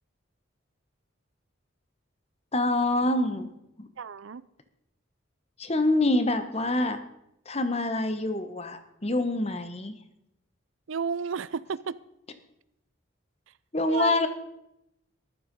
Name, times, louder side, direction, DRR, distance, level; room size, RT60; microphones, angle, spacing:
voice 1, 2.5-3.9 5.6-7.0 7.5-9.9 13.7-14.3, left 2 dB, 30° left, 10 dB, 1.1 m, -26 dB
voice 2, 4.0-4.4 10.9-12.0 13.9-14.3, right 5 dB, 75° right, 18 dB, 0.5 m, -32 dB
14.5 x 11.0 x 5.3 m, 0.82 s
head